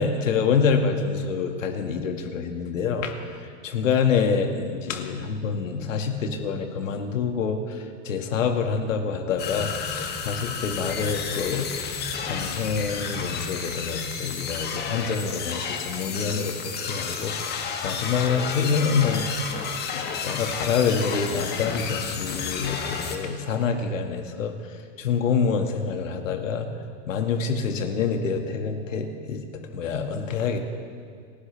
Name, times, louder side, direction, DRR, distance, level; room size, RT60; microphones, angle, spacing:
voice 1, 0.0-11.7 12.2-19.5 19.9-24.5 25.0-26.7 27.1-29.4 29.7-30.6, left 5 dB, 80° left, 4 dB, 2.0 m, -26 dB
sound 1, 9.4-23.2, left 6 dB, 25° left, 1.7 m, -32 dB
30.0 x 13.5 x 3.4 m, 2.2 s
hypercardioid pair, 125°, 38 cm